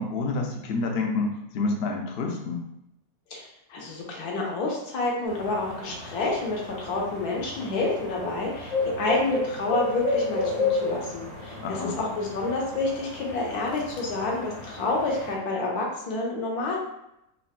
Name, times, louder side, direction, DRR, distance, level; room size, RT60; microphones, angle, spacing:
voice 1, 0.0-2.6 11.6-12.0, left 3 dB, 70° left, 1 dB, 0.5 m, -28 dB
voice 2, 3.7-16.8, left 3 dB, 90° left, -2 dB, 1.3 m, -29 dB
sound 1, 5.3-15.3, left 3 dB, 30° left, 1.2 m, -32 dB
3.7 x 2.1 x 2.4 m, 0.83 s
omnidirectional pair, 1.6 m